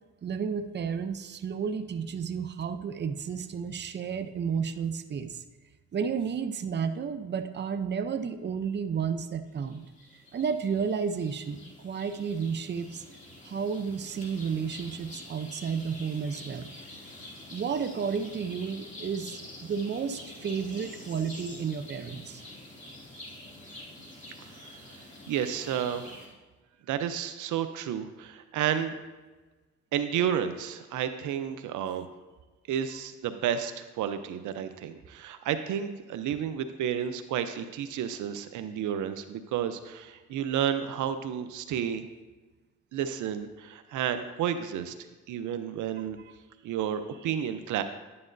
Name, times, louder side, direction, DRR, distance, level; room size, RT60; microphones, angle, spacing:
voice 1, 0.2-5.4 5.9-9.9 10.3-13.0 13.4-16.7 17.5-22.4, right 6 dB, 35° right, 8 dB, 0.7 m, -32 dB
sound 1, 9.6-26.3, left 1 dB, 25° left, 2.4 m, -47 dB
voice 2, 24.5-25.0 25.3-26.2 26.9-29.0 29.9-32.1 32.7-42.1 42.9-44.9 45.3-46.2 46.6-47.8, right 9 dB, 80° right, 9 dB, 0.7 m, -31 dB
11.0 x 9.7 x 2.6 m, 1.2 s
cardioid pair, 90°, 30 cm